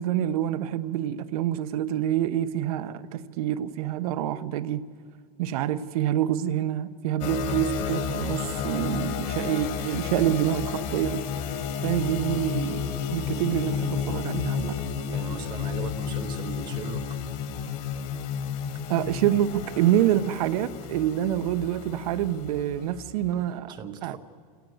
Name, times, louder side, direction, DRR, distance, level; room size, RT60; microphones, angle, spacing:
voice 1, 0.0-4.8 5.4-11.2 11.8-14.8 18.9-23.8 24.0-24.2, right 11 dB, 65° right, 1.1 m, -27 dB
sound 1, 7.2-23.5, left 7 dB, 35° left, 1.7 m, -32 dB
voice 2, 15.1-17.2 23.7-24.2, right 7 dB, 20° right, 0.8 m, -39 dB
28.5 x 17.5 x 8.0 m
supercardioid pair, 180°, 20 cm